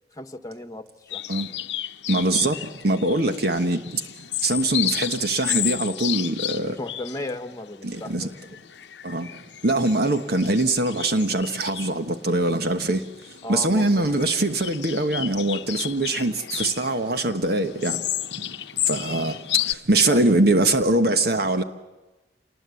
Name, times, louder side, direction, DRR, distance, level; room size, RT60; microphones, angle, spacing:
voice 1, 0.1-1.2 6.8-8.3 13.4-14.2 20.1-20.3, left 1 dB, 20° left, 1.3 m, -35 dB
sound 1, 1.1-19.7, left 13 dB, 75° left, 0.8 m, -32 dB
voice 2, 2.1-4.0 4.4-6.8 7.8-8.3 9.0-9.3 9.6-13.0 13.5-18.0 18.9-21.6, right 2 dB, 60° right, 1.2 m, -23 dB
27.5 x 20.0 x 8.3 m
head